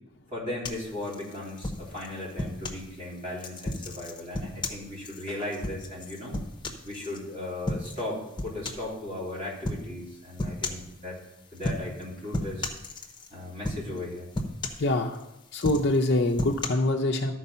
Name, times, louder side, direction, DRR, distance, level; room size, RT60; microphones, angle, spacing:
voice 1, 0.3-6.4 6.8-11.2 11.5-12.7 13.3-14.3, left 1 dB, 35° right, -6 dB, 3.2 m, -37 dB
sound 1, 0.6-2.9 3.4-7.2 7.7-8.1 8.4-8.9 9.6-9.9 10.4-10.9 11.6-12.0 12.3-13.3 13.6-14.0 14.3-15.2 15.6-16.7, left 2 dB, 20° left, 0.9 m, -34 dB
voice 2, 14.8-15.2 15.5-17.3, left 2 dB, 50° left, 1 dB, 0.6 m, -24 dB
13.0 x 4.7 x 5.5 m, 0.90 s
head